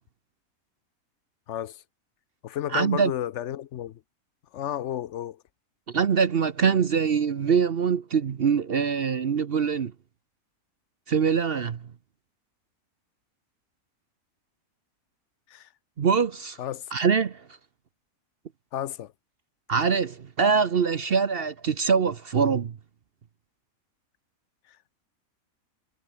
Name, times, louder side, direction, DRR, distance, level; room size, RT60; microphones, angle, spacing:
voice 1, 1.5-1.8 2.4-4.0 4.5-5.4 15.5-15.7 16.6-16.9 18.7-19.1, left 11 dB, 65° left, 0.9 m, -32 dB
voice 2, 2.7-3.1 5.9-9.9 11.1-11.8 16.0-16.6 16.9-17.4 19.7-22.8, right 6 dB, 50° right, 1.0 m, -23 dB
omnidirectional pair, 1.5 m